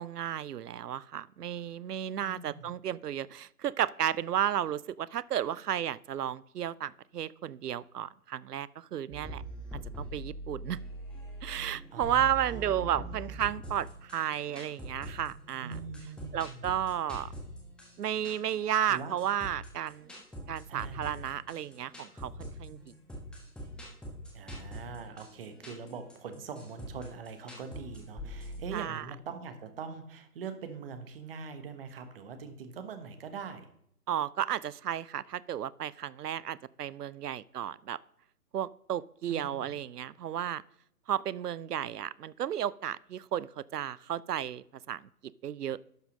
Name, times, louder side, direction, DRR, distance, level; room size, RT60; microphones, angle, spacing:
voice 1, 0.0-9.4 10.0-10.8 11.4-15.8 16.3-17.3 18.0-20.1 20.5-22.8 28.7-29.0 34.1-38.0 38.5-40.6 41.1-45.0 45.4-45.8, right 10 dB, 75° right, 22 dB, 0.5 m, -33 dB
voice 2, 2.2-2.7 11.9-13.4 15.6-16.7 18.9-19.2 20.7-21.2 24.3-33.7 39.3-39.7, right 5 dB, 35° right, 9 dB, 1.2 m, -43 dB
sound 1, 9.1-28.6, right 1 dB, ahead, 1.4 m, -43 dB
11.5 x 5.6 x 5.1 m, 0.71 s
figure-of-eight pair, 130°, 47 cm